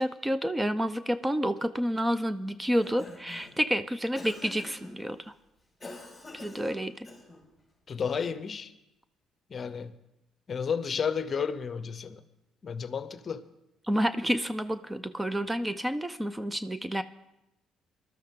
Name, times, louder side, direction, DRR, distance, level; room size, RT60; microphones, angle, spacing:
voice 1, 0.0-5.3 6.3-7.1 13.9-17.0, equal, 10° right, 0.5 m, -29 dB
Cough, 2.6-3.6 4.2-5.0 5.8-7.5, left 2 dB, 10° left, 4.9 m, -46 dB
voice 2, 7.9-8.7 9.5-9.9 10.5-12.2 12.6-13.4, left 6 dB, 40° left, 0.8 m, -32 dB
20.5 x 12.5 x 3.7 m
cardioid pair, 90°, 0 cm